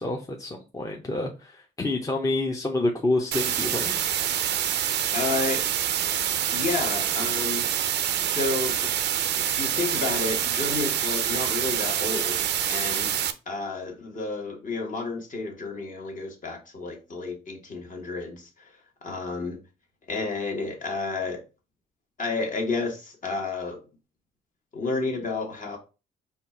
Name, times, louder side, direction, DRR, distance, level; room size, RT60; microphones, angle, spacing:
voice 1, 0.0-4.0, left 2 dB, 20° left, 0.7 m, -28 dB
sound 1, 3.3-13.3, right 10 dB, 75° right, 0.5 m, -26 dB
voice 2, 5.1-5.6 6.5-7.6 8.2-8.9 9.4-13.1 13.5-18.8 19.0-19.6 20.1-21.4 22.2-23.8 24.7-25.8, left 3 dB, 45° left, 1.4 m, -31 dB
4.2 x 2.4 x 4.3 m
cardioid pair, 85°, 18 cm